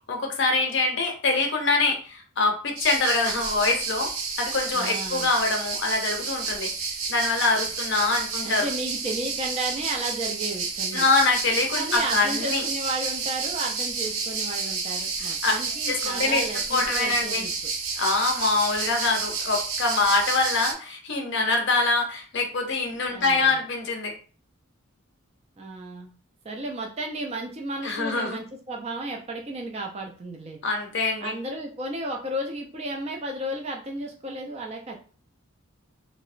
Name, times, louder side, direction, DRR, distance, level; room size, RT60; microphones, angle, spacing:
voice 1, 0.1-4.1 4.4-6.7 7.1-8.7 10.9-12.6 15.2-15.5 15.9-16.4 16.7-17.5 18.0-24.1 27.8-28.4 30.6-31.3, left 3 dB, 55° left, 2 dB, 0.6 m, -24 dB
sound 1, 2.8-20.7, right 5 dB, 75° right, 0.6 m, -30 dB
voice 2, 4.7-5.3 8.4-11.1 11.7-17.7 23.1-23.6 25.6-26.1 26.4-30.6 31.2-35.0, right 1 dB, 30° right, 1 dB, 0.3 m, -33 dB
2.8 x 2.0 x 2.4 m, 0.39 s
head